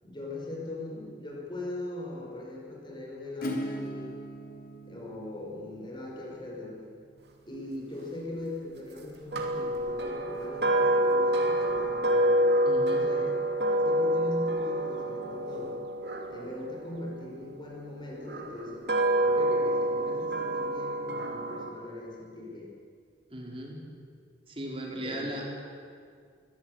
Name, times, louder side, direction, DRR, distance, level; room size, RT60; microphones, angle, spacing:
voice 1, 0.0-4.1 4.9-6.9 7.5-12.5 12.8-15.8 16.3-18.9 19.2-22.7 24.9-25.4, left 1 dB, 25° left, -2 dB, 5.3 m, -40 dB
Acoustic guitar / Strum, 3.4-8.9, equal, 55° left, 3.3 m, -41 dB
sound 1, 9.3-17.5 18.2-21.7, right 1 dB, 65° right, 2.9 m, -27 dB
voice 2, 12.6-13.1 23.3-23.8 24.5-25.4, right 1 dB, 30° right, -1 dB, 4.5 m, -37 dB
23.0 x 16.5 x 9.4 m, 2.1 s
head